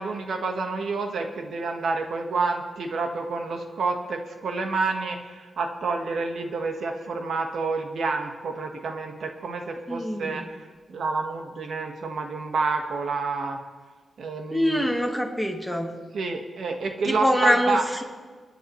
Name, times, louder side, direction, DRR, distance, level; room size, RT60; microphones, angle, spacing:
voice 1, 0.0-13.6 14.2-14.9 16.1-17.9, right 4 dB, 75° right, 4 dB, 1.4 m, -29 dB
voice 2, 9.9-10.4 14.5-15.9 17.0-18.0, equal, ahead, 3 dB, 1.6 m, -24 dB
28.5 x 10.0 x 3.2 m, 1.5 s
wide cardioid pair, 100°, 0 cm